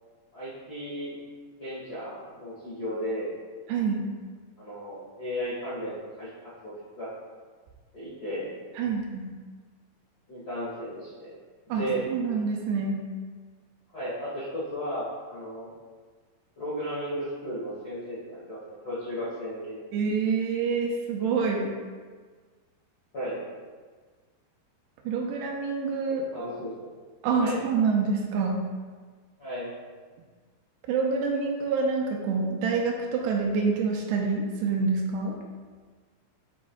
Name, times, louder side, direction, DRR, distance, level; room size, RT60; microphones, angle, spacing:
voice 1, 0.3-1.2 1.6-3.3 4.6-6.3 6.6-7.1 7.9-8.5 10.3-11.3 11.6-12.0 13.9-15.7 16.5-19.9 23.1-23.4 26.3-26.8 27.4-27.6 29.4-29.7, equal, 80° left, -12 dB, 0.8 m, -34 dB
voice 2, 3.7-4.1 8.8-9.3 11.7-13.0 19.9-21.7 25.1-26.5 27.2-28.6 30.9-35.4, right 4 dB, 85° right, 0 dB, 2.6 m, -27 dB
8.4 x 5.0 x 2.3 m, 1.5 s
omnidirectional pair, 5.0 m